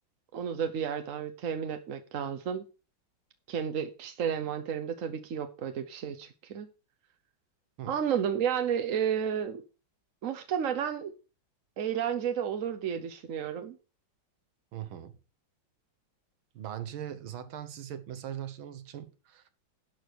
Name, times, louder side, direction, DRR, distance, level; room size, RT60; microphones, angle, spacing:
voice 1, 0.3-2.6 3.5-6.7 7.9-9.6 10.2-11.1 11.8-13.8, right 8 dB, 55° right, 0.9 m, -32 dB
voice 2, 14.7-15.2 16.5-19.5, right 10 dB, 80° right, 1.9 m, -40 dB
11.5 x 4.7 x 6.5 m
omnidirectional pair, 2.2 m